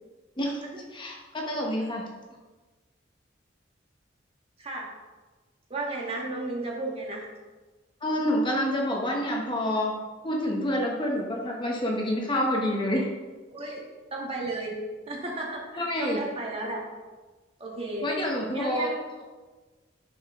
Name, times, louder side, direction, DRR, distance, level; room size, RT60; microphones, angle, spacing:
voice 1, 0.9-2.1 8.0-9.9 10.2-13.1 15.8-16.2 18.0-18.9, equal, 25° left, -1 dB, 1.0 m, -27 dB
voice 2, 4.6-4.9 5.7-7.3 13.5-14.7 15.1-16.8 17.6-18.1 18.5-19.0, right 2 dB, 30° right, -2 dB, 1.6 m, -34 dB
8.1 x 6.4 x 3.6 m, 1.3 s
head